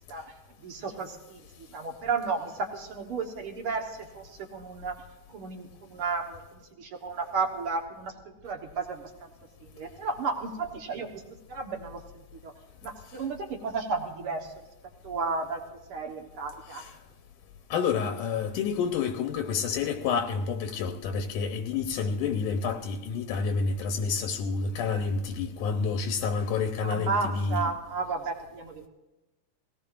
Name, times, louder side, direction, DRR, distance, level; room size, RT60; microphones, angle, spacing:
voice 1, 0.6-4.9 5.3-9.3 9.6-11.2 11.5-12.5 12.8-14.5 15.0-16.8 26.8-28.9, right 4 dB, 55° right, 1.6 m, -33 dB
voice 2, 17.7-27.7, left 5 dB, 80° left, 2.3 m, -29 dB
19.5 x 17.5 x 2.5 m
omnidirectional pair, 3.7 m